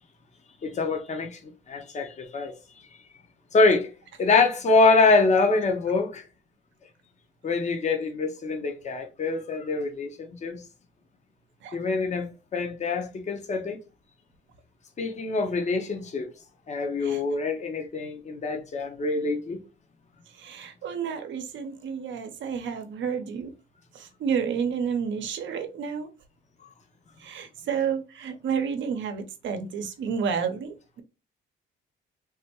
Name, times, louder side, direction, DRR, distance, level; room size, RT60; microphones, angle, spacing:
voice 1, 0.6-1.4 1.7-2.5 3.5-3.9 4.2-6.2 7.4-10.6 11.7-13.8 15.0-16.3 16.7-19.6, left 3 dB, 35° left, 0.7 m, -24 dB
voice 2, 20.3-23.5 23.9-26.1 27.2-31.0, right 7 dB, 70° right, 0.7 m, -30 dB
3.4 x 2.2 x 2.9 m
cardioid pair, 90°, 20 cm